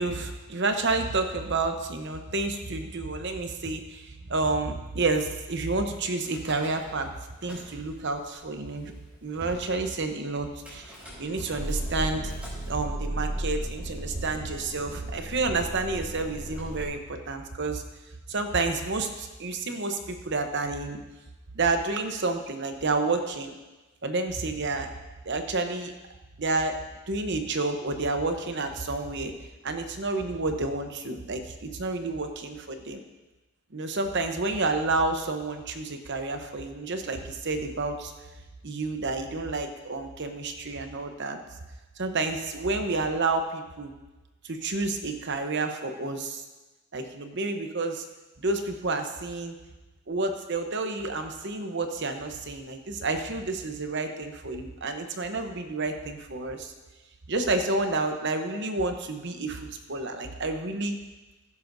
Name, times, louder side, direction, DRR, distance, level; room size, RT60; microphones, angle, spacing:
voice 1, 0.0-7.1 7.4-8.9 9.2-10.9 11.2-12.3 12.7-17.8 18.3-21.0 21.5-23.6 24.0-24.9 25.2-25.9 26.4-26.8 27.1-29.3 29.6-33.0 33.7-38.1 38.6-41.4 42.0-43.9 44.4-46.4 46.9-48.0 48.4-49.6 50.1-56.7 57.3-61.0, right 3 dB, 50° right, 6 dB, 0.9 m, -30 dB
Car / Engine starting / Idling, 6.2-7.0 7.3-8.1 8.7-8.8 9.0-9.1 9.4-9.7 10.6-16.8, right 1 dB, 5° right, 3.8 m, -36 dB
16.0 x 10.5 x 2.7 m, 1.1 s
head